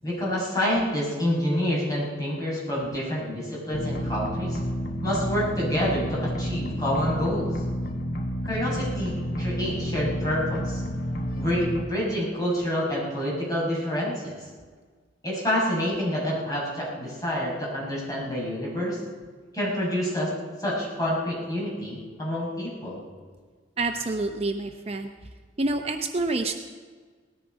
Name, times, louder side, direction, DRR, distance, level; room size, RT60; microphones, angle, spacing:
voice 1, 0.0-4.6 5.0-7.5 8.4-10.8 11.3-14.3 15.2-19.0 19.5-20.3 20.6-23.0, equal, 20° left, -5 dB, 5.7 m, -28 dB
sound 1, 3.7-11.8, equal, 50° left, 1.2 m, -30 dB
voice 2, 23.8-25.1 25.6-26.6, right 2 dB, 35° right, 5 dB, 0.7 m, -27 dB
18.5 x 13.5 x 5.2 m, 1.5 s
head